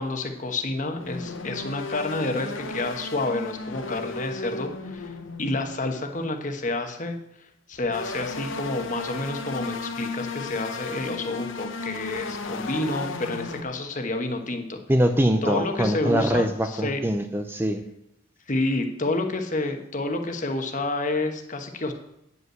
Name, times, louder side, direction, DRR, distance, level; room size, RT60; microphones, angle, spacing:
voice 1, 0.0-7.2 7.7-14.8 15.4-17.0 18.5-21.9, left 2 dB, 40° left, 5 dB, 1.1 m, -29 dB
sound 1, 0.8-5.9 7.7-13.6, left 3 dB, 70° left, 0.9 m, -35 dB
voice 2, 14.9-17.8, equal, 10° right, 7 dB, 0.4 m, -23 dB
9.5 x 5.4 x 7.8 m, 0.81 s
head